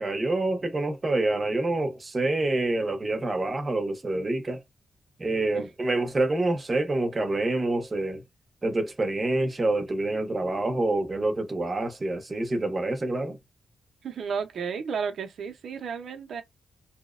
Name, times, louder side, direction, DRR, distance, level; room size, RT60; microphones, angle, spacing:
voice 1, 0.0-4.6 5.2-8.2 8.6-13.4, right 2 dB, 20° right, 0.6 m, -27 dB
voice 2, 14.0-16.4, right 6 dB, 60° right, 0.5 m, -32 dB
2.7 x 2.0 x 2.4 m
wide cardioid pair, 175°, 0 cm